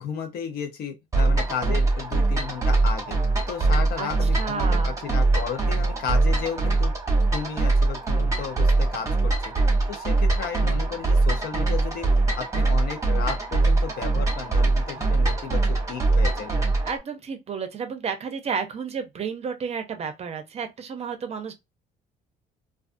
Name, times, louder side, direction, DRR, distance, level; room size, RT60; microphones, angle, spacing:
voice 1, 0.0-3.2 3.5-6.9 7.2-9.5 9.9-12.1 12.4-16.7, left 7 dB, 65° left, 0.7 m, -33 dB
sound 1, 1.1-17.0, right 3 dB, 20° right, 0.9 m, -22 dB
voice 2, 4.0-4.9 16.8-21.5, right 6 dB, 40° right, 0.5 m, -32 dB
2.4 x 2.3 x 2.5 m
cardioid pair, 110°, 17 cm